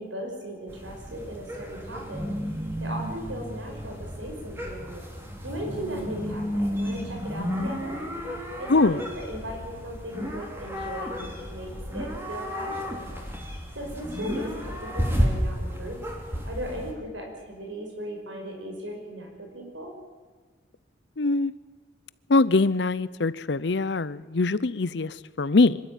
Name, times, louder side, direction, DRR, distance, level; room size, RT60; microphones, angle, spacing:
voice 1, 0.0-2.3 2.8-5.0 5.4-8.0 8.6-13.0 13.8-16.0 16.5-19.9, equal, 80° right, 1 dB, 5.5 m, -37 dB
sound 1, 0.7-16.9, equal, 10° right, 3.0 m, -32 dB
voice 2, 8.7-9.0 21.2-21.5 22.3-25.8, left 3 dB, 65° left, 18 dB, 0.7 m, -23 dB
25.0 x 13.0 x 9.1 m, 1.3 s
head